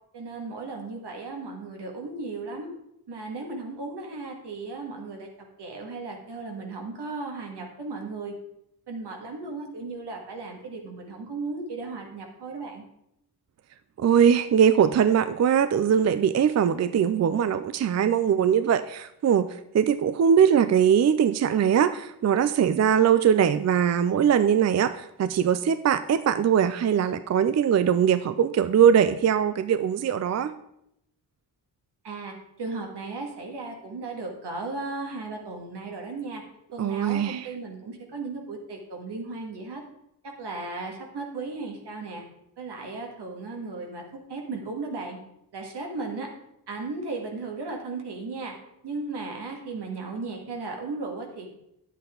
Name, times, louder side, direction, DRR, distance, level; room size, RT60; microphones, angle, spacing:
voice 1, 0.1-2.7 3.1-5.3 5.6-8.3 8.9-12.8 32.0-36.4 36.7-39.8 40.2-42.2 42.6-45.2 45.5-46.3 46.7-48.5 48.8-51.5, right 3 dB, 80° right, 2 dB, 2.1 m, -36 dB
voice 2, 14.0-19.5 19.7-30.5 36.8-37.5, right 8 dB, 45° right, 12 dB, 0.4 m, -21 dB
10.5 x 8.1 x 3.8 m, 0.80 s
wide cardioid pair, 135°, 40 cm